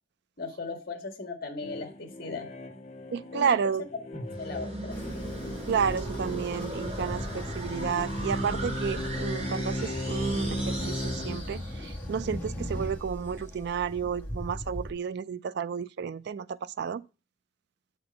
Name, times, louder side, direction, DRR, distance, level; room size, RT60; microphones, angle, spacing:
voice 1, 0.4-2.5 3.3-3.7 4.4-5.3, left 4 dB, 55° left, 1.7 m, -38 dB
sound 1, 1.6-11.4, equal, 35° left, 0.8 m, -37 dB
voice 2, 3.1-3.9 5.7-17.0, right 7 dB, 60° right, 0.4 m, -31 dB
sound 2, 4.1-12.0, right 2 dB, 35° right, 2.9 m, -40 dB
Train, 4.9-14.9, left 1 dB, 10° left, 1.6 m, -38 dB
7.7 x 4.4 x 5.2 m
head